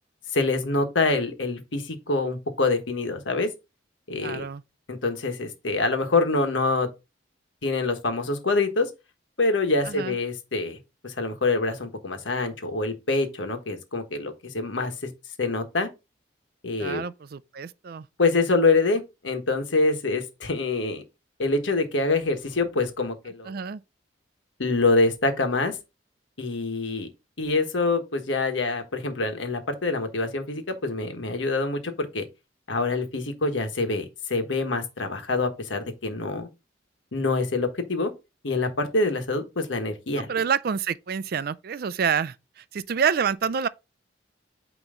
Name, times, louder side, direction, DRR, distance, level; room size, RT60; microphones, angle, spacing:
voice 1, 0.3-3.5 4.1-4.4 4.9-6.9 7.6-8.9 9.4-10.8 11.0-15.1 15.4-15.9 16.6-17.0 18.2-21.0 21.4-23.6 24.6-25.8 26.4-27.1 27.4-32.3 32.7-36.5 37.1-38.1 38.4-40.3, left 3 dB, 85° left, 1.3 m, -25 dB
voice 2, 4.2-4.6 9.8-10.1 16.8-18.1 23.5-23.8 40.2-43.7, right 6 dB, 55° right, 0.4 m, -28 dB
8.9 x 3.0 x 3.8 m
head